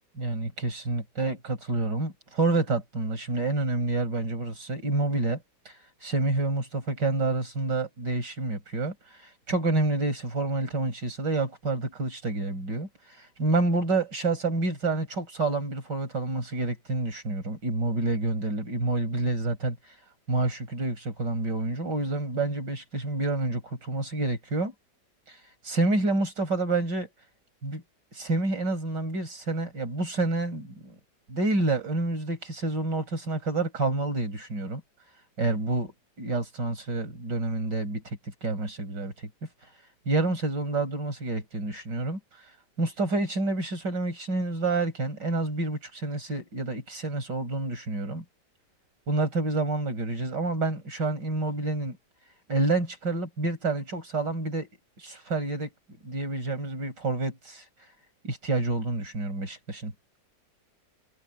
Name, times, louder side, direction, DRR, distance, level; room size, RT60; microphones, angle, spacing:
voice 1, 0.2-5.7 6.0-12.9 13.2-19.8 20.3-24.7 25.3-25.4 25.6-27.1 27.6-27.8 28.1-31.0 31.3-34.8 35.4-35.9 36.2-39.1 40.1-42.2 42.8-48.2 49.1-52.0 52.5-54.7 55.0-55.7 56.0-57.6 58.2-59.9, right 2 dB, 90° right, 6.0 m, -28 dB
omnidirectional pair, 1.8 m